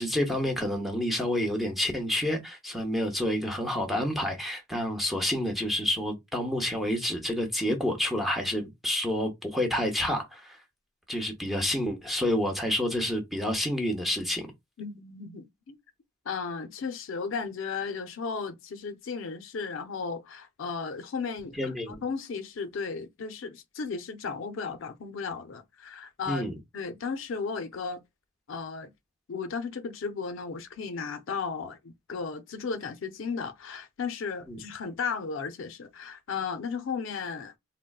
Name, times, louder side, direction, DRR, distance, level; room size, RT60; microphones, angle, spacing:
voice 1, 0.0-10.6 11.1-14.5 21.6-21.9 26.3-26.5 34.5-34.6, left 1 dB, ahead, 0.7 m, -29 dB
voice 2, 14.8-15.8 16.3-26.4 26.7-28.0 28.5-28.9 29.3-37.5, left 5 dB, 70° left, 0.5 m, -35 dB
3.7 x 2.1 x 2.3 m
head